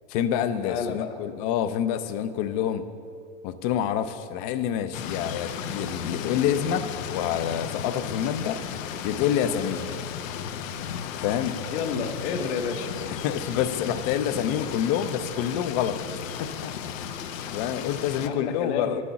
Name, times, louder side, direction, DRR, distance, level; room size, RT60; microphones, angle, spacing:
voice 1, 0.1-2.8 3.4-8.6 9.0-10.0 11.2-11.6 13.2-16.0 16.4-16.7 17.5-19.0, left 9 dB, 35° left, 11 dB, 0.4 m, -27 dB
voice 2, 0.6-1.1 11.7-13.0 17.8-17.9 18.2-19.0, left 6 dB, 60° left, 6 dB, 1.1 m, -30 dB
sound 1, 4.9-18.3, left 8 dB, 90° left, 0.8 m, -35 dB
11.0 x 6.3 x 7.0 m, 2.4 s
supercardioid pair, 155°, 38 cm